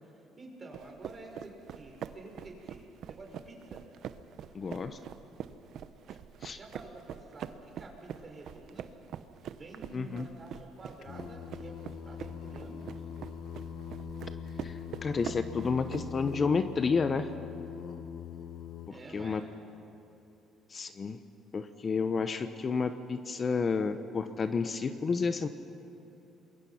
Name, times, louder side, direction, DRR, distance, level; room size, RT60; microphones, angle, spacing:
voice 1, 0.0-3.8 6.6-8.9 9.4-13.0 18.9-19.5, right 2 dB, 30° right, 0 dB, 5.8 m, -49 dB
sound 1, 0.7-16.4, right 9 dB, 65° right, 0.9 m, -44 dB
voice 2, 4.5-5.0 6.4-6.6 9.9-10.3 14.6-17.3 19.1-19.4 20.7-21.2 21.5-25.5, left 5 dB, 40° left, 10 dB, 1.0 m, -30 dB
Singing, 11.0-18.9, left 7 dB, 65° left, 1.2 m, -42 dB
26.5 x 22.0 x 5.9 m, 2.8 s
cardioid pair, 90°, 0 cm